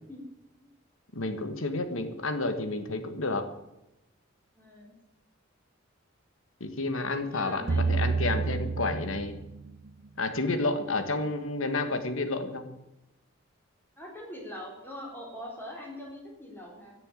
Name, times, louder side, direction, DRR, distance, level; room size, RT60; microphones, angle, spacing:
voice 1, 1.1-3.4 6.6-9.3 10.2-12.7, left 2 dB, 85° left, 8 dB, 1.5 m, -30 dB
voice 2, 4.6-5.0 7.1-8.7 10.3-10.6 14.0-16.9, equal, 10° left, -1 dB, 3.6 m, -43 dB
sound 1, 7.7-9.9, right 4 dB, 65° right, 0.6 m, -29 dB
14.0 x 6.8 x 9.0 m, 0.93 s
head